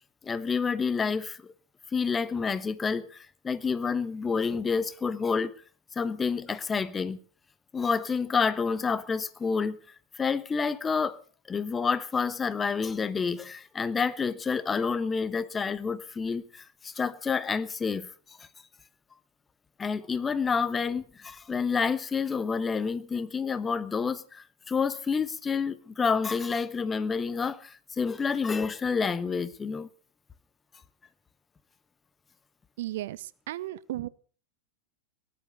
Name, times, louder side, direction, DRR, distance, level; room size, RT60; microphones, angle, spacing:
voice 1, 0.2-1.5 1.9-5.5 5.9-7.2 7.7-9.8 10.1-11.2 11.5-18.1 19.8-29.9, left 5 dB, 15° left, 1.1 m, -29 dB
voice 2, 32.8-34.1, right 15 dB, 55° right, 0.7 m, -35 dB
18.0 x 11.5 x 6.7 m
figure-of-eight pair, 90°, 0 cm